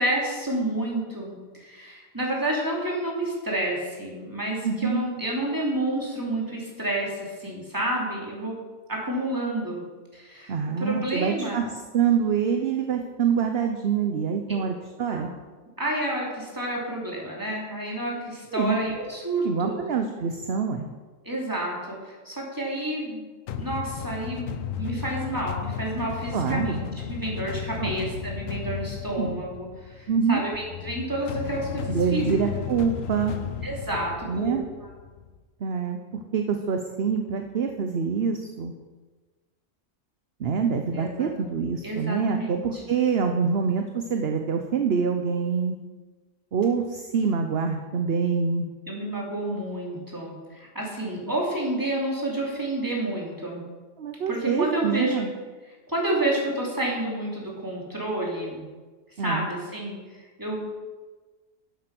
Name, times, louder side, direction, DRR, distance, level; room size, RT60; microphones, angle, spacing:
voice 1, 0.0-8.6 8.9-9.8 10.1-11.6 15.1-15.4 15.8-19.8 21.2-23.3 23.6-32.6 33.6-34.9 40.9-41.3 41.8-42.8 48.9-53.6 54.3-55.3 55.9-58.7 59.2-60.9, right 1 dB, 15° right, -3 dB, 2.9 m, -30 dB
voice 2, 4.6-5.0 10.5-11.7 11.9-15.3 18.5-18.8 19.4-20.9 26.3-26.8 27.8-27.9 29.2-29.4 30.1-30.4 31.9-33.3 34.3-34.6 35.6-36.0 36.3-38.7 40.4-45.8 46.5-48.7 54.0-55.3 59.2-59.5, right 6 dB, 55° right, 5 dB, 1.0 m, -25 dB
sound 1, 23.5-35.4, left 8 dB, 90° left, 1.1 m, -34 dB
11.0 x 7.9 x 6.0 m, 1.3 s
omnidirectional pair, 1.3 m